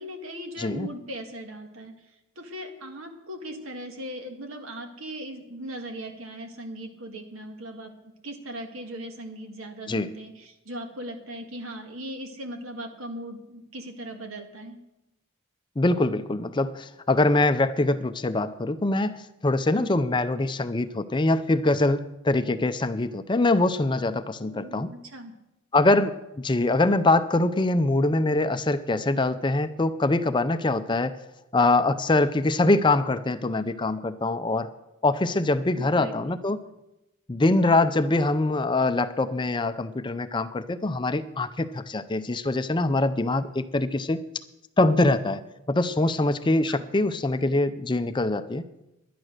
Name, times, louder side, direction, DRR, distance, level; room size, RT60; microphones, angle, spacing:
voice 1, 0.0-1.9 2.4-7.9 8.2-14.8 19.7-20.0 24.4-25.3 35.8-36.1 46.7-46.8, right 1 dB, 80° right, 5 dB, 1.9 m, -38 dB
voice 2, 0.6-0.9 9.9-10.1 15.8-24.9 25.7-31.1 31.5-34.7 35.0-36.6 37.3-44.2 44.8-45.4 45.7-48.6, left 2 dB, 20° left, 11 dB, 0.5 m, -23 dB
11.0 x 10.5 x 6.5 m, 0.92 s
head